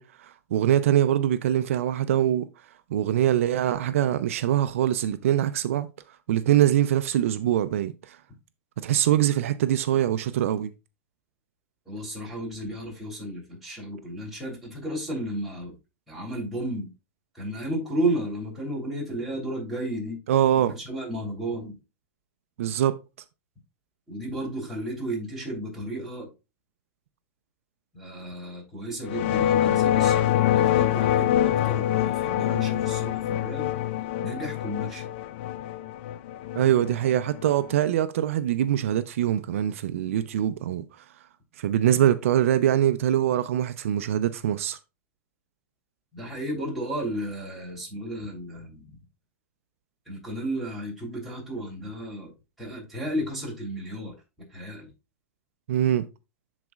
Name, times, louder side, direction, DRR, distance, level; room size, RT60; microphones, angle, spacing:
voice 1, 0.0-2.5 2.9-5.9 6.3-8.2 8.8-10.7 20.3-20.7 22.6-23.0 36.6-40.8 41.6-44.8 55.7-56.1, right 11 dB, 80° right, 0.5 m, -23 dB
voice 2, 11.8-15.7 16.1-16.9 17.3-20.2 20.7-21.8 24.1-26.3 27.9-33.8 34.2-35.1 46.1-48.9 50.0-52.3 52.6-54.1 54.5-54.9, right 1 dB, ahead, 3.2 m, -33 dB
sound 1, 29.0-37.7, left 11 dB, 55° left, 0.5 m, -25 dB
12.0 x 4.1 x 2.4 m
supercardioid pair, 140°, 7 cm